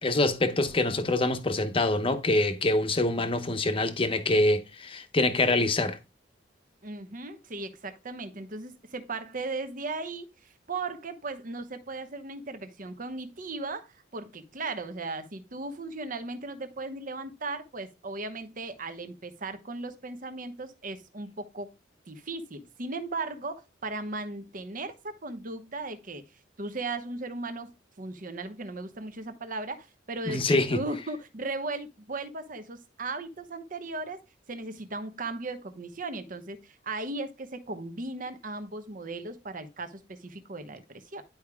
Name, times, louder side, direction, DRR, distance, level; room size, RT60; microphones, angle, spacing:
voice 1, 0.0-6.0 30.3-30.8, left 2 dB, 30° left, 0.9 m, -25 dB
voice 2, 6.8-10.3 10.7-21.7 22.1-26.2 26.6-27.7 28.0-34.2 34.5-41.2, right 3 dB, 45° right, 1.0 m, -37 dB
11.5 x 4.8 x 2.2 m
head